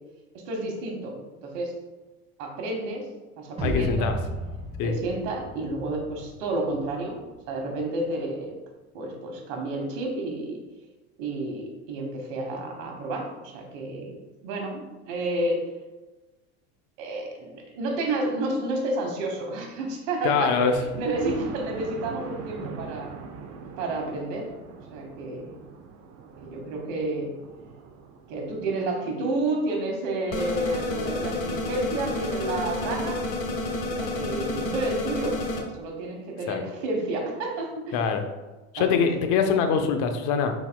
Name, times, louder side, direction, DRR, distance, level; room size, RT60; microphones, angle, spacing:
voice 1, 0.4-1.7 2.4-3.1 3.4-4.2 4.8-7.2 7.5-8.5 8.9-10.6 11.2-14.2 14.4-15.6 17.0-23.1 23.8-24.5 24.9-25.6 26.4-27.3 28.3-33.2 34.0-35.4 35.8-38.0 38.7-39.3, right 2 dB, 65° right, 2 dB, 1.3 m, -30 dB
voice 2, 3.6-4.2 4.8-4.9 20.2-20.7 36.5-36.6 37.9-38.2 38.7-40.5, left 6 dB, 60° left, 6 dB, 0.7 m, -23 dB
sound 1, 3.6-6.9, equal, 15° right, 1.4 m, -33 dB
Thunder, 20.7-30.5 31.0-31.1 31.5-31.6 31.9-32.0, right 5 dB, 45° right, 0.6 m, -42 dB
sound 2, 30.3-35.6, left 2 dB, 80° left, 1.1 m, -30 dB
5.6 x 4.1 x 2.2 m, 1.2 s
supercardioid pair, 105°, 35 cm